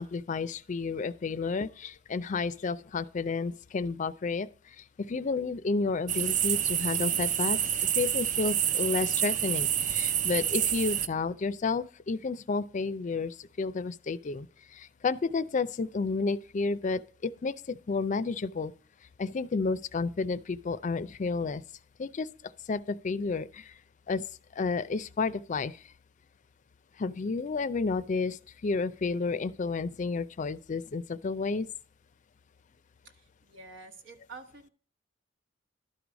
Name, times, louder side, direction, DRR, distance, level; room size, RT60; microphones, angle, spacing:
voice 1, 0.0-7.6 7.9-18.7 19.2-21.6 22.0-22.3 22.7-23.7 24.1-24.2 24.5-25.8 27.0-31.7, left 4 dB, 40° left, 0.4 m, -31 dB
sound 1, 6.1-11.1, right 10 dB, 40° right, 0.4 m, -28 dB
voice 2, 33.4-34.7, right 3 dB, 80° right, 1.2 m, -47 dB
12.0 x 4.7 x 5.1 m
head